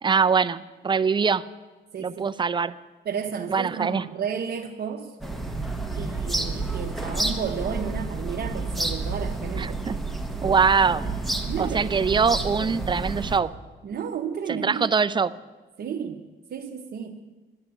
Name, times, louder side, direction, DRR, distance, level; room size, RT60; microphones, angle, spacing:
voice 1, 0.0-1.4 2.0-2.7 3.5-4.0 9.6-10.0 10.4-11.1 11.6-13.5 14.5-15.3, right 5 dB, 25° right, 14 dB, 0.5 m, -23 dB
voice 2, 1.9-2.2 3.0-5.1 5.9-9.8 11.5-11.9 13.8-14.9 15.8-16.2 16.5-17.2, right 7 dB, 55° right, 2 dB, 1.0 m, -32 dB
sound 1, 5.2-13.4, right 2 dB, ahead, 1.4 m, -30 dB
11.5 x 10.0 x 9.0 m, 1.3 s
cardioid pair, 90°, 20 cm